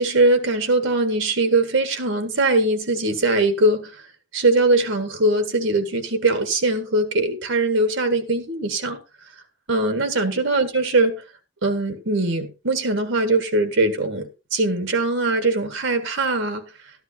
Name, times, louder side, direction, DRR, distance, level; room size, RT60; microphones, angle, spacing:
voice 1, 0.0-3.9 4.3-9.0 9.7-11.2 11.6-16.6, right 2 dB, 85° right, 1.6 m, -21 dB
13.5 x 11.0 x 2.7 m
head